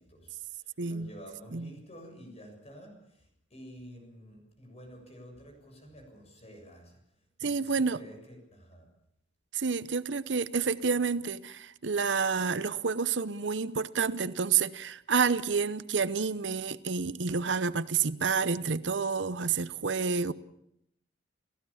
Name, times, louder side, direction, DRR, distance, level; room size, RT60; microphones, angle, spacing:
voice 1, 0.0-8.9, equal, 35° left, 7.4 m, -50 dB
voice 2, 0.8-1.1 1.5-1.7 7.4-8.0 9.5-20.3, right 5 dB, 70° right, 0.8 m, -29 dB
30.0 x 15.5 x 7.2 m
head